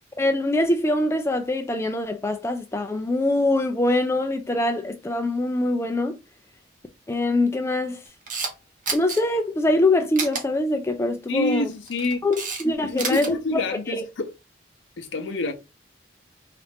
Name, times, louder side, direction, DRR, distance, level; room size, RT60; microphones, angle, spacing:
voice 1, 0.2-6.2 7.1-8.0 8.9-11.7 12.2-13.6 13.9-14.0, left 2 dB, 15° left, 0.3 m, -23 dB
Camera, 8.1-8.5 8.9-9.2 10.2-10.4 11.7-12.6 12.9-13.3, right 4 dB, 45° right, 1.0 m, -29 dB
voice 2, 11.3-12.2 12.8-14.3 15.0-15.5, left 2 dB, 75° left, 0.6 m, -27 dB
4.0 x 2.5 x 3.4 m
head